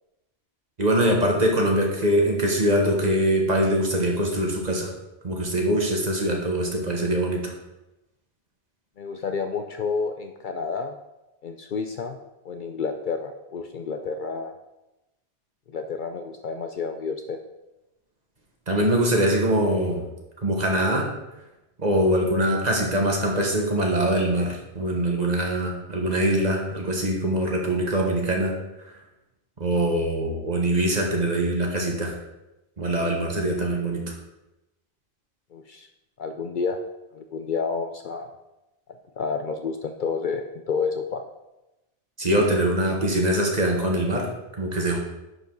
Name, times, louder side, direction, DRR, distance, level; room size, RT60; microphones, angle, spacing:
voice 1, 0.8-4.9 5.2-7.5 18.7-20.0 20.4-21.1 21.8-28.9 29.6-32.2 32.8-34.0 42.2-44.3 44.6-45.0, right 1 dB, 40° right, 0 dB, 1.4 m, -23 dB
voice 2, 9.0-10.9 11.4-12.2 12.4-14.5 15.7-17.4 35.5-35.9 36.2-36.8 37.1-38.3 39.2-41.2, left 5 dB, 60° left, 6 dB, 0.6 m, -30 dB
10.5 x 5.1 x 3.9 m, 0.97 s
omnidirectional pair, 1.1 m